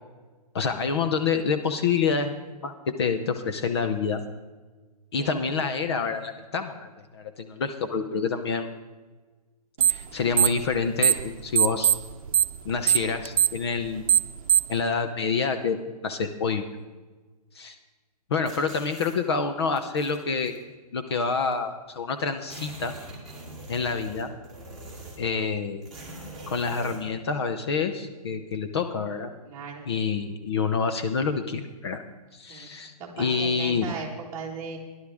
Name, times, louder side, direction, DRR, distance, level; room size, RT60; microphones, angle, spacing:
voice 1, 0.5-2.3 2.6-2.7 3.0-4.2 5.1-8.7 9.9-11.9 12.6-14.2 14.7-16.6 17.5-17.8 18.3-20.5 20.9-22.9 23.7-24.3 25.2-25.8 26.5-29.3 29.9-32.0 32.3-33.9, left 5 dB, 40° left, 8 dB, 0.8 m, -27 dB
sound 1, 9.8-10.1 10.3-11.3 11.5-14.8, right 10 dB, 60° right, 0.8 m, -20 dB
sound 2, 18.4-19.2 19.7-20.6 21.5-21.6 21.8-21.9 22.2-25.3 25.8-27.0, right 1 dB, ahead, 3.1 m, -43 dB
voice 2, 29.4-29.9 32.5-32.7 33.0-34.8, right 5 dB, 15° right, -3 dB, 1.7 m, -37 dB
18.0 x 11.5 x 3.6 m, 1.3 s
hypercardioid pair, 170°, 20 cm